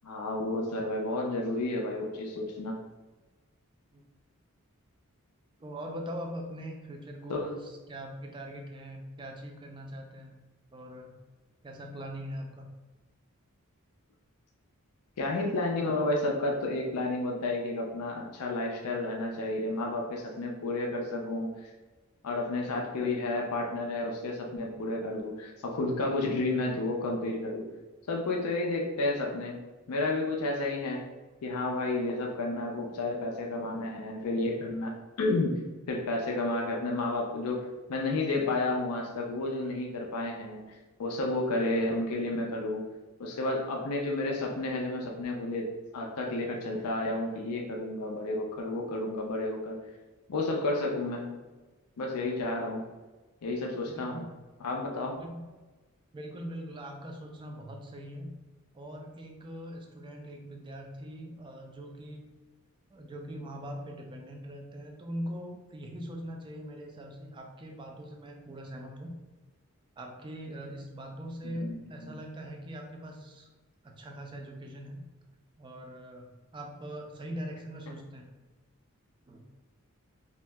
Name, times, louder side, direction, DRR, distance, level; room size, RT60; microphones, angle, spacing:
voice 1, 0.0-2.8 7.3-7.5 15.2-21.5 22.2-27.6 28.1-29.6 29.9-31.0 31.4-34.9 35.2-35.6 35.9-42.8 43.2-45.7 45.9-49.8 50.3-51.3 52.0-52.9 53.4-54.2 54.6-55.2 71.5-71.7 72.0-72.2, left 2 dB, 85° left, 0 dB, 0.4 m, -31 dB
voice 2, 5.6-10.3 10.7-11.1 11.6-12.7 53.8-54.3 55.1-55.4 56.1-58.3 58.7-62.3 62.9-69.1 70.0-73.5 73.8-75.0 75.6-78.3 79.3-79.5, equal, 20° right, 2 dB, 0.3 m, -41 dB
2.7 x 2.0 x 3.3 m, 1.2 s
head